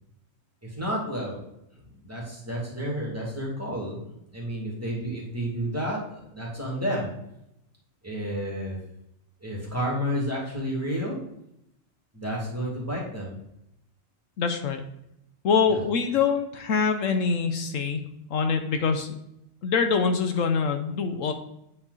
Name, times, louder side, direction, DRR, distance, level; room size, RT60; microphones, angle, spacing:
voice 1, 0.6-1.4 1.7-7.1 8.0-8.8 9.4-11.2 12.1-13.3 15.7-15.8, equal, 10° right, -4 dB, 2.4 m, -31 dB
voice 2, 14.4-14.8 15.4-18.0 18.3-19.1 19.6-21.3, left 5 dB, 75° left, 7 dB, 1.1 m, -24 dB
8.7 x 4.5 x 4.0 m, 0.81 s
omnidirectional pair, 1.4 m